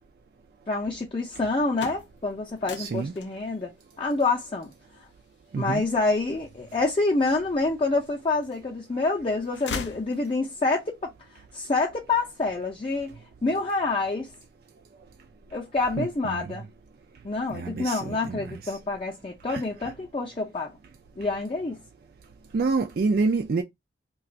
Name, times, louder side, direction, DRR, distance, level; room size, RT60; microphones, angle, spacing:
voice 1, 0.7-3.7 4.0-4.7 5.5-14.3 15.5-16.6 17.2-20.7 21.2-21.8, left 3 dB, 30° left, 0.5 m, -27 dB
sound 1, 1.5-7.4 8.0-8.8 9.1-10.7, left 5 dB, 85° left, 0.5 m, -41 dB
voice 2, 2.8-3.1 5.5-5.8 16.0-16.5 17.5-18.6 19.5-19.6 22.5-23.6, right 4 dB, 55° right, 0.4 m, -27 dB
2.4 x 2.3 x 3.9 m
head